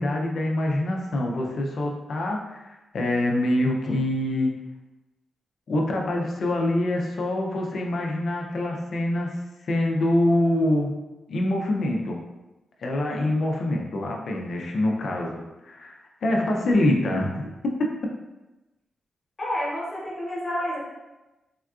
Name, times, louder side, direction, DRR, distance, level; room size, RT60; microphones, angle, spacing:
voice 1, 0.0-4.5 5.7-9.4 9.6-10.9 11.3-12.2 12.8-17.5, left 1 dB, 60° left, 1 dB, 0.4 m, -25 dB
voice 2, 19.4-20.8, left 1 dB, 30° left, -5 dB, 1.0 m, -30 dB
3.6 x 2.3 x 2.3 m, 1.1 s
wide cardioid pair, 130°, 0 cm